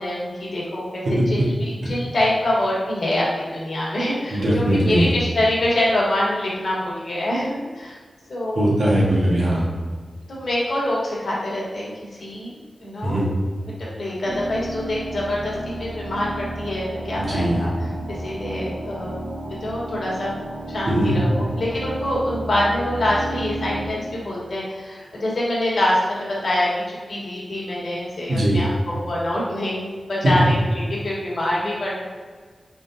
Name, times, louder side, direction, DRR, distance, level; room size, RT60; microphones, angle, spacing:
voice 1, 0.0-8.0 8.3-8.7 10.3-11.9 12.2-13.2 13.8-17.7 18.1-19.2 19.6-20.3 20.7-32.0, left 1 dB, 60° left, -5 dB, 1.3 m, -25 dB
voice 2, 4.3-5.1 8.5-9.7 13.0-13.3 17.2-17.7 20.9-21.2 28.3-28.6, right 1 dB, 75° right, -6 dB, 1.5 m, -20 dB
sound 1, 14.3-23.9, right 1 dB, 50° right, 0.6 m, -32 dB
4.8 x 3.7 x 2.7 m, 1.5 s
wide cardioid pair, 125°, 0 cm